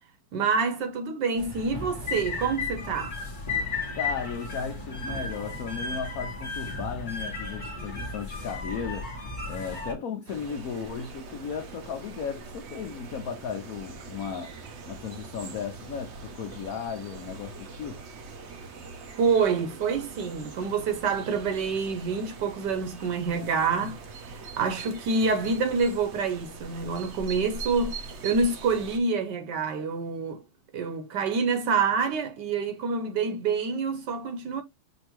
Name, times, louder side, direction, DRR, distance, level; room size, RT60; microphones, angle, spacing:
voice 1, 0.3-3.2 19.2-30.4 30.7-34.6, right 5 dB, 65° right, 1.2 m, -27 dB
sound 1, 1.4-9.9, left 3 dB, 35° left, 0.9 m, -34 dB
voice 2, 3.9-9.1 9.4-14.6 14.9-18.1, left 6 dB, 75° left, 0.8 m, -35 dB
sound 2, 10.3-29.0, right 4 dB, 90° right, 0.6 m, -42 dB
5.3 x 2.6 x 2.9 m
omnidirectional pair, 2.2 m